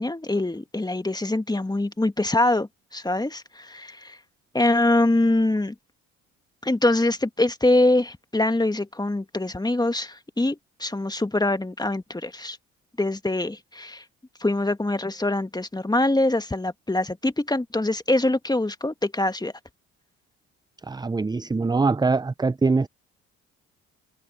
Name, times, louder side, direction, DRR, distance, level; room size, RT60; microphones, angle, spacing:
voice 1, 0.0-4.2 4.5-5.8 6.6-12.6 13.0-14.0 14.4-19.5, left 2 dB, 10° left, 1.8 m, -24 dB
voice 2, 20.9-22.9, right 4 dB, 10° right, 0.6 m, -23 dB
hypercardioid pair, 55°, 36 cm